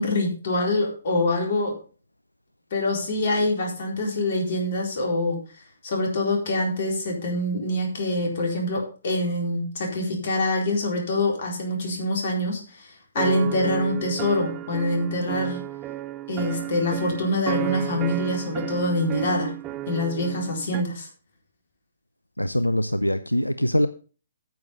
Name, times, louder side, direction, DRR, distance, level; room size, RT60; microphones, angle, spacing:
voice 1, 0.0-1.8 2.7-5.4 5.8-12.9 13.1-15.6 16.3-19.5 19.9-21.1, left 1 dB, 45° left, 0 dB, 4.1 m, -25 dB
sound 1, 13.2-20.8, right 15 dB, 20° right, 0.6 m, -33 dB
voice 2, 22.4-23.9, equal, 85° left, 13 dB, 0.5 m, -23 dB
9.4 x 7.5 x 5.3 m, 0.37 s
figure-of-eight pair, 130°, 0 cm